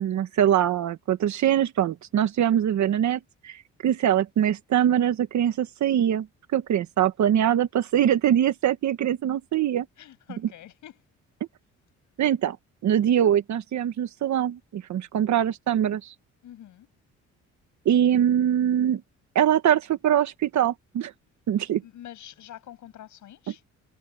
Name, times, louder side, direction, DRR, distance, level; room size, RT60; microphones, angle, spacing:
voice 1, 0.0-6.3 6.5-9.9 12.2-12.6 12.8-16.1 17.8-19.0 19.3-21.1 21.5-21.8, right 10 dB, 65° right, 1.5 m, -23 dB
voice 2, 10.0-11.0 16.4-16.9 21.8-23.6, left 12 dB, 75° left, 7.7 m, -46 dB
cardioid pair, 90°, 30 cm